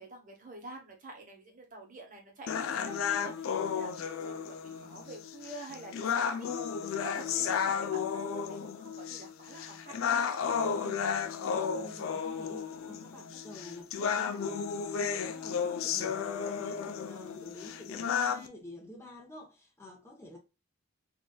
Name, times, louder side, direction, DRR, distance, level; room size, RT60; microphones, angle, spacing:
voice 1, 0.0-6.5 6.8-10.2, right 2 dB, 40° right, 0.9 m, -48 dB
sound 1, 2.5-18.5, left 7 dB, 80° left, 0.4 m, -33 dB
voice 2, 10.6-20.4, left 1 dB, 15° left, 0.8 m, -49 dB
3.9 x 2.5 x 2.2 m
head